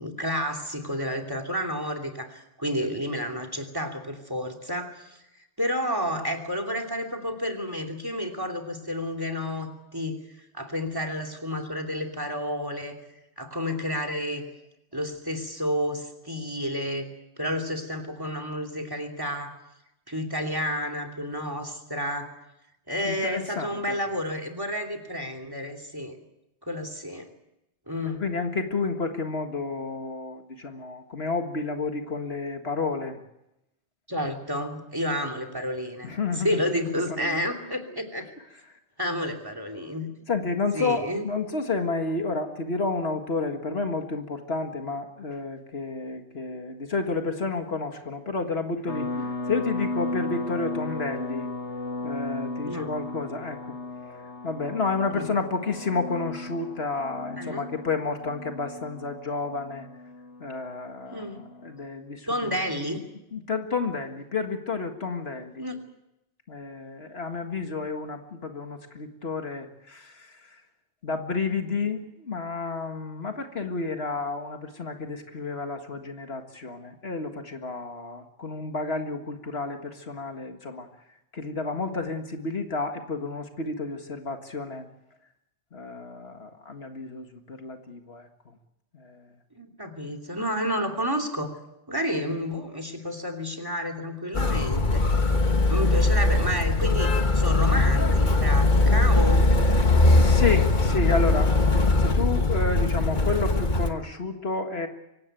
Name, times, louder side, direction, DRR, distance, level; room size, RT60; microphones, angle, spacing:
voice 1, 0.0-5.2 5.6-10.2 10.5-13.0 13.4-14.5 14.9-17.1 17.4-19.6 20.1-22.3 22.9-26.2 26.6-27.3 27.9-28.2 34.1-38.3 39.0-40.1 40.7-41.3 49.2-49.3 52.6-52.9 55.1-55.3 57.4-57.7 61.1-61.4 62.3-63.0 65.6-65.8 89.5-91.6 91.9-95.1 95.6-99.5, equal, 20° right, 7 dB, 2.9 m, -30 dB
voice 2, 23.0-24.0 28.0-33.2 36.0-37.4 37.9-38.7 40.3-51.5 52.0-53.6 54.4-59.9 60.4-62.6 63.3-65.7 66.5-70.6 71.0-80.9 81.3-84.9 85.7-88.5 88.9-89.3 99.9-101.6 102.0-104.9, left 3 dB, 65° left, 5 dB, 2.1 m, -31 dB
sound 1, 48.9-61.8, left 2 dB, 90° left, 1.9 m, -35 dB
Motor vehicle (road), 94.3-103.9, left 2 dB, 45° left, 1.5 m, -21 dB
24.5 x 17.0 x 9.1 m, 0.89 s
omnidirectional pair, 1.1 m